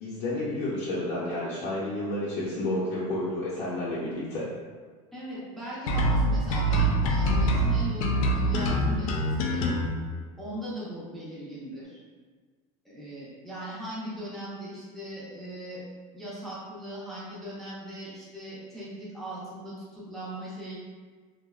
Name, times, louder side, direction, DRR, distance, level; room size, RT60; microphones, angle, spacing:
voice 1, 0.0-4.5, left 1 dB, 45° left, -8 dB, 0.6 m, -30 dB
voice 2, 5.1-9.8 10.4-12.0 12.8-15.8 16.1-20.8, right 1 dB, ahead, -10 dB, 0.6 m, -39 dB
sound 1, 5.9-9.9, right 1 dB, 90° left, 0.4 m, -24 dB
2.6 x 2.1 x 2.3 m, 1.5 s
supercardioid pair, 130°, 17 cm